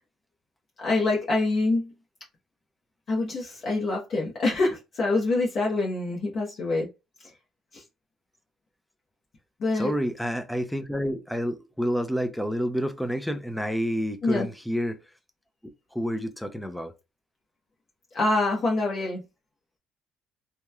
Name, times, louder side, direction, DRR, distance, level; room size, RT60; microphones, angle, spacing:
voice 1, 0.8-1.9 3.1-6.9 7.7-7.8 9.6-9.9 14.2-14.5 18.1-19.2, left 2 dB, 50° left, 0.8 m, -25 dB
voice 2, 9.7-15.0 15.6-16.9, equal, 5° left, 0.4 m, -29 dB
2.9 x 2.1 x 2.3 m
cardioid pair, 120°, 0 cm